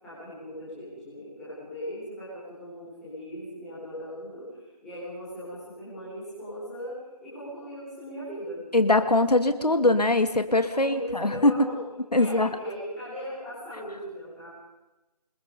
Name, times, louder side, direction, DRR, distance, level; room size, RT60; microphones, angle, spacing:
voice 1, 0.0-8.6 10.7-11.8 12.2-14.5, equal, ahead, -12 dB, 4.1 m, -39 dB
voice 2, 8.7-11.5 12.1-12.5, left 2 dB, 70° left, 8 dB, 2.6 m, -22 dB
29.0 x 21.0 x 5.2 m, 1.0 s
figure-of-eight pair, 175°, 21 cm